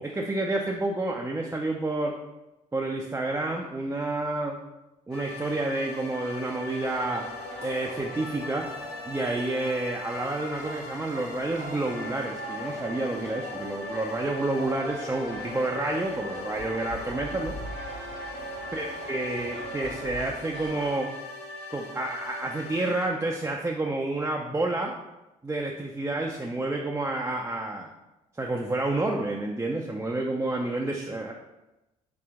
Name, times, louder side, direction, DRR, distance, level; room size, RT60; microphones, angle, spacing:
voice 1, 0.0-2.1 2.7-4.6 5.1-7.2 7.6-8.7 9.1-17.6 18.7-21.1 21.7-25.0 25.4-27.9 28.3-31.3, right 2 dB, 15° right, -1 dB, 0.4 m, -29 dB
sound 1, 5.1-23.1, left 2 dB, 85° left, 0.7 m, -41 dB
sound 2, 6.8-20.9, equal, 65° left, 0.9 m, -40 dB
3.3 x 2.8 x 3.6 m, 0.98 s
hypercardioid pair, 50°, 19 cm